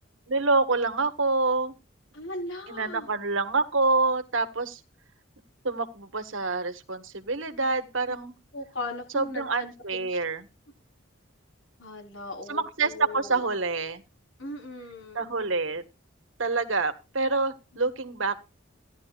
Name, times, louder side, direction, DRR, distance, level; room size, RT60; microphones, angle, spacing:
voice 1, 0.3-1.7 2.7-4.8 5.6-8.4 9.1-10.5 12.5-14.0 15.1-15.8 16.4-18.4, right 3 dB, 85° right, 8 dB, 1.7 m, -27 dB
voice 2, 2.1-3.1 8.1-8.2 8.5-10.2 11.8-13.5 14.4-15.3, left 2 dB, 80° left, 3 dB, 4.4 m, -38 dB
16.5 x 11.5 x 2.5 m, 0.28 s
head